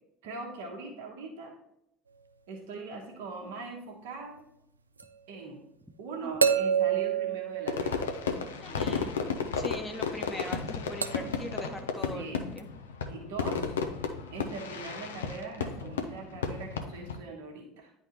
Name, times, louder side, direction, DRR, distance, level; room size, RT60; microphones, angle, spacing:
voice 1, 0.2-1.5 2.5-4.4 5.3-5.6 6.0-8.0 8.9-9.3 12.1-12.4 13.1-13.8 14.3-17.9, right 4 dB, 70° right, 0 dB, 1.2 m, -41 dB
sound 1, 5.0-5.1 6.4-8.5 11.0-11.5 12.6-12.7, right 7 dB, 90° right, 0.3 m, -28 dB
Fireworks, 7.7-17.2, left 5 dB, 80° left, 0.6 m, -33 dB
voice 2, 8.6-9.1 9.6-12.7, left 1 dB, 10° left, 2 dB, 1.0 m, -40 dB
10.0 x 3.5 x 2.9 m, 0.78 s
figure-of-eight pair, 65°, 0 cm